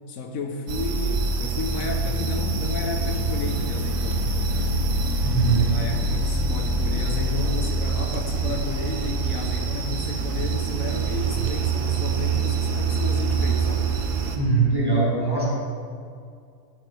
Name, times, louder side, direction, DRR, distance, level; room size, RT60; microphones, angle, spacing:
voice 1, 0.1-4.8 5.4-13.9, left 3 dB, 80° left, 4 dB, 1.2 m, -33 dB
sound 1, 0.7-14.4, right 3 dB, 85° right, 1.1 m, -25 dB
voice 2, 5.2-5.8 14.3-15.5, right 4 dB, 15° right, -5 dB, 1.5 m, -21 dB
9.1 x 6.9 x 3.3 m, 2.2 s
omnidirectional pair, 1.4 m